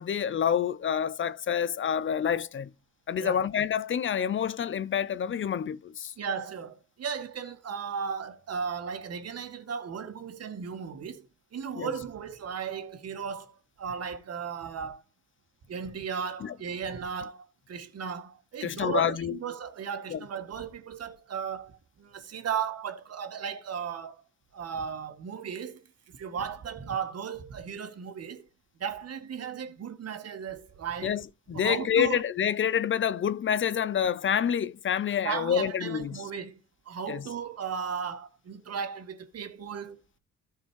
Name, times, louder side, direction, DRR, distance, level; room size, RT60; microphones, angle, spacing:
voice 1, 0.0-2.7 3.1-6.1 11.8-11.9 16.4-16.5 18.6-19.4 20.1-20.2 31.0-31.2 31.5-36.2 37.1-37.2, left 8 dB, 40° left, 0.6 m, -28 dB
voice 2, 6.2-15.0 15.7-24.2 24.5-28.5 28.8-31.2 31.5-32.2 35.2-36.6 36.9-40.2, right 7 dB, 55° right, 1.9 m, -36 dB
13.5 x 4.6 x 4.7 m
cardioid pair, 90°, 30 cm